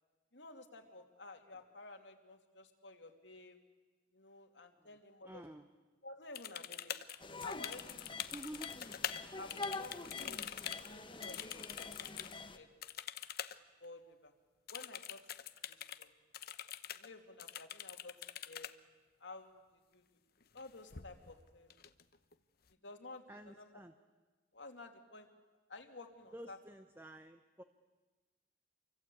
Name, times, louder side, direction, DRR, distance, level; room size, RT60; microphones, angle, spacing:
voice 1, 0.3-3.6 4.1-5.4 6.0-7.0 7.4-8.0 9.3-10.5 10.9-12.7 13.8-14.3 14.7-15.2 15.7-16.1 16.9-18.7 19.2-20.0 20.5-21.7 22.8-23.2 23.6-23.8 24.5-25.3 25.7-26.6, left 2 dB, 75° left, 4 dB, 2.8 m, -53 dB
voice 2, 5.2-5.7 8.0-8.7 23.3-23.9 26.3-27.6, right 1 dB, 15° right, 7 dB, 0.9 m, -51 dB
sound 1, 6.3-9.2 9.5-12.3 12.8-13.6 13.8-13.9 14.7-16.1 16.3-17.1 17.4-18.7 20.4-20.6 20.9-21.4 21.7-22.3, left 10 dB, 55° left, 0.9 m, -45 dB
sound 2, 7.2-12.6, left 3 dB, 25° left, 1.3 m, -46 dB
28.0 x 24.0 x 8.6 m, 1.3 s
head